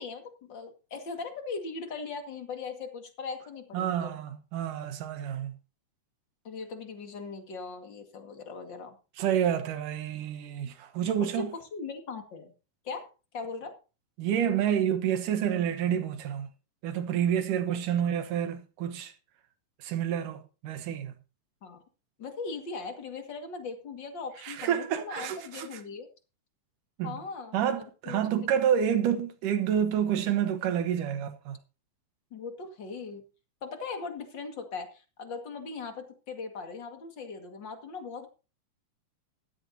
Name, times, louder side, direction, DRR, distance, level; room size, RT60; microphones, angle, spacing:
voice 1, 0.0-4.1 6.4-9.0 11.7-12.5 12.8-13.1 13.3-13.7 21.6-21.8 22.2-26.1 27.0-28.5 32.3-33.2 33.6-38.3, left 4 dB, 40° left, 2.1 m, -39 dB
voice 2, 3.7-5.6 9.2-11.5 14.2-16.5 16.8-19.1 19.8-21.1 24.4-25.8 27.0-27.1 27.5-31.6, right 9 dB, 70° right, 2.6 m, -29 dB
15.5 x 13.5 x 2.8 m
omnidirectional pair, 4.2 m